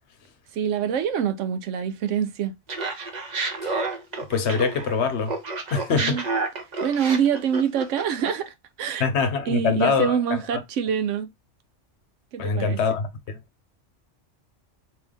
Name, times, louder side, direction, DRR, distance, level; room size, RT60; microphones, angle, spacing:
voice 1, 0.5-2.5 5.9-6.2 6.8-9.1 9.5-11.3 12.3-12.8, right 8 dB, 85° right, 1.0 m, -25 dB
Laughter, 2.7-5.0 5.3-8.5, right 3 dB, 40° right, 0.8 m, -30 dB
voice 2, 4.2-5.4 5.7-6.2 9.0-10.6 12.4-13.4, left 5 dB, 65° left, 1.0 m, -24 dB
3.6 x 2.8 x 3.3 m
omnidirectional pair, 1.2 m